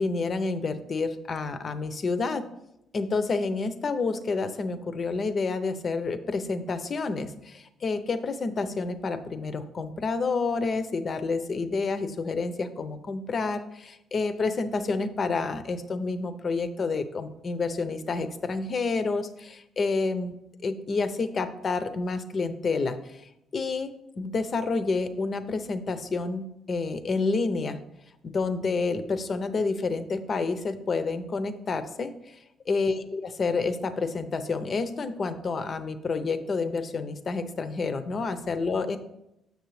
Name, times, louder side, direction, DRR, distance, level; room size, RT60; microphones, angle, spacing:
voice 1, 0.0-2.5 2.9-20.4 20.6-23.2 23.5-27.8 28.2-32.4 32.7-39.0, left 4 dB, 45° left, 11 dB, 0.6 m, -29 dB
6.7 x 6.5 x 3.2 m, 0.86 s
cardioid pair, 90°, 0 cm